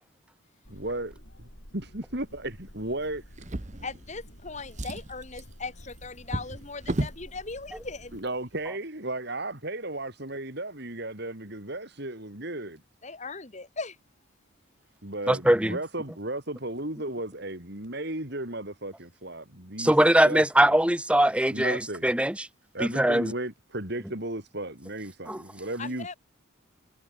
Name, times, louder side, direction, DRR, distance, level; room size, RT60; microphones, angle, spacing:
sound 1, 0.6-8.2, equal, 55° left, 7.8 m, -50 dB
voice 1, 0.7-1.5 1.7-3.2 8.1-12.8 15.0-19.9 20.2-20.7 21.5-22.1 22.7-26.2, right 1 dB, 55° right, 5.0 m, -35 dB
Drawer open or close, 3.3-4.3 4.6-7.3 8.1-8.3 8.7-8.8, right 1 dB, 35° right, 1.1 m, -35 dB
voice 2, 3.8-8.2 13.0-13.9 25.8-26.2, left 4 dB, 35° left, 1.8 m, -38 dB
voice 3, 15.3-15.8 19.8-22.5 22.8-23.3 25.3-25.4, right 1 dB, 5° right, 1.3 m, -22 dB
head